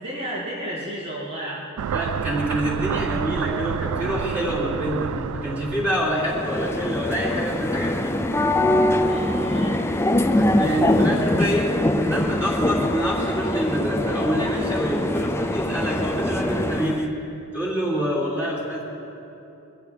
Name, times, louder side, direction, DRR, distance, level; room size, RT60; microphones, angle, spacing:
voice 1, 0.0-1.7 9.0-9.9, right 1 dB, 50° right, -9 dB, 2.6 m, -32 dB
voice 2, 1.8-8.1 10.3-17.1 17.5-18.8, equal, 10° right, -6 dB, 3.0 m, -26 dB
sound 1, 1.8-6.7, right 8 dB, 90° right, 0.3 m, -29 dB
sound 2, 6.2-17.1, left 1 dB, 10° left, 0.5 m, -23 dB
22.5 x 15.5 x 3.5 m, 2.9 s
head